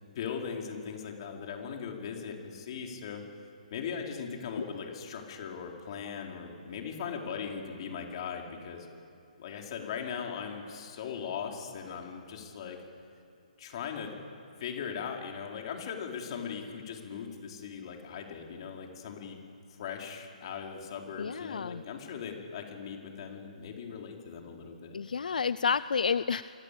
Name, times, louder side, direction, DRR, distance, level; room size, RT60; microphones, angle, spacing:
voice 1, 0.1-3.2 3.7-8.9 9.4-12.8 13.6-14.1 14.6-19.4 19.7-25.0, left 6 dB, 40° left, 1 dB, 4.5 m, -39 dB
voice 2, 21.2-21.8 24.9-26.4, left 6 dB, 75° left, 16 dB, 0.6 m, -30 dB
28.0 x 25.0 x 8.5 m, 2.6 s
hypercardioid pair, 160°, 4 cm